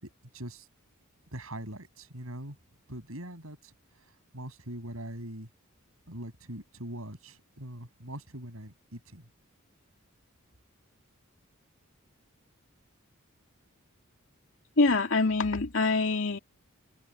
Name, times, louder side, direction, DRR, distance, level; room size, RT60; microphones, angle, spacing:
voice 1, 0.0-0.7 1.3-2.6 2.9-5.5 6.1-9.3, right 1 dB, 75° right, 7.3 m, -42 dB
voice 2, 14.8-16.4, left 3 dB, 60° left, 2.6 m, -25 dB
head